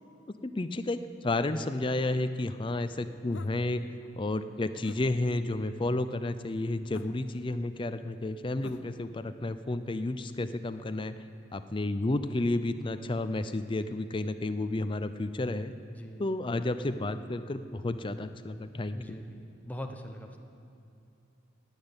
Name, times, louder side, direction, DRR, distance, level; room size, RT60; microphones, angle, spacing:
voice 1, 0.4-3.8 4.2-11.1 11.5-15.7 16.2-19.2, left 2 dB, 25° left, 11 dB, 0.5 m, -31 dB
sound 1, 3.3-3.6 4.8-5.0 6.9-7.3 8.6-9.0, left 3 dB, 80° left, 0.7 m, -46 dB
voice 2, 15.9-16.2 18.9-20.4, equal, 10° left, 3 dB, 0.9 m, -41 dB
12.0 x 8.9 x 9.8 m, 2.7 s
head